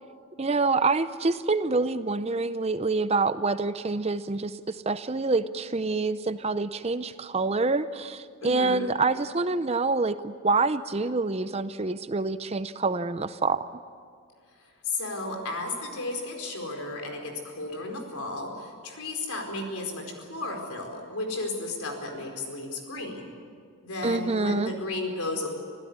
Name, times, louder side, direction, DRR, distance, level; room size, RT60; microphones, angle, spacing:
voice 1, 0.4-13.8 24.0-24.7, right 3 dB, 30° right, 13 dB, 0.6 m, -26 dB
voice 2, 8.4-8.9 14.8-23.3 23.8-25.5, left 2 dB, 80° left, 3 dB, 4.6 m, -33 dB
26.0 x 16.0 x 9.5 m, 2.1 s
head